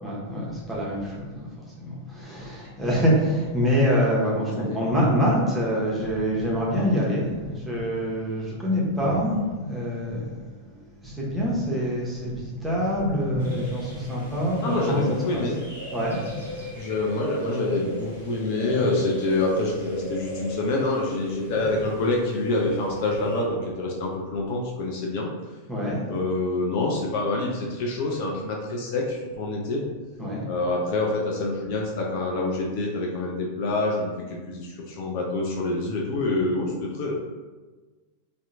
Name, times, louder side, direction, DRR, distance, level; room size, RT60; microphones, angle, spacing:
voice 1, 0.0-15.0 15.3-15.5 15.9-16.9 18.7-18.8 21.6-21.7 25.7-26.0 30.2-30.4, equal, 5° right, -6 dB, 0.8 m, -26 dB
sound 1, 13.4-23.4, left 1 dB, 80° left, 1.0 m, -36 dB
voice 2, 14.6-15.6 16.8-25.3 26.1-29.8 30.5-37.1, left 2 dB, 45° left, -2 dB, 0.4 m, -26 dB
2.7 x 2.1 x 2.5 m, 1.3 s
figure-of-eight pair, 90°, 0 cm